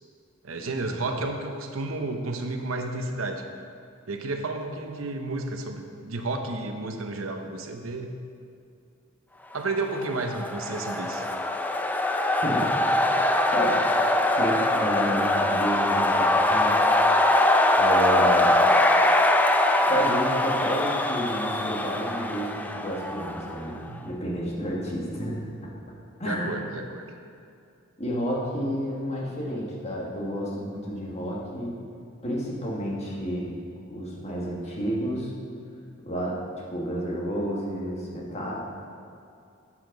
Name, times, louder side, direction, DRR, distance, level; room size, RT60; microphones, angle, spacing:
voice 1, 0.4-3.4 4.1-8.1 9.5-11.3 23.9-24.0 26.2-27.1, right 2 dB, 80° right, 5 dB, 0.8 m, -31 dB
sound 1, 9.9-23.7, left 1 dB, 10° left, 0.4 m, -22 dB
voice 2, 14.4-16.8 17.8-18.5 19.9-25.4 26.2-26.6 28.0-31.8 32.2-33.5 33.9-35.3 36.0-36.4 36.7-38.5, equal, 35° left, -4 dB, 1.7 m, -30 dB
10.5 x 7.5 x 3.9 m, 2.5 s
head